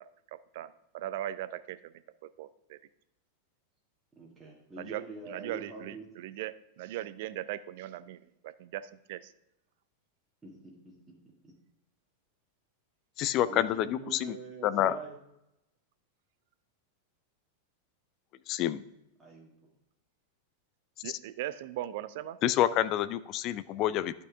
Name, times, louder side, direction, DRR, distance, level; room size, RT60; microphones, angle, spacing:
voice 1, 0.0-1.9 2.2-2.8 4.8-9.3 21.0-22.4, right 13 dB, 50° right, 14 dB, 0.5 m, -39 dB
voice 2, 4.2-6.1 10.4-11.1 11.4-11.5 13.5-15.2 19.2-19.7, right 3 dB, 10° right, -4 dB, 1.8 m, -45 dB
voice 3, 13.2-14.4 14.6-15.0 18.5-18.8 21.0-21.1 22.4-24.1, left 12 dB, 40° left, 15 dB, 0.4 m, -28 dB
11.5 x 5.5 x 3.5 m, 0.86 s
figure-of-eight pair, 90°, 0 cm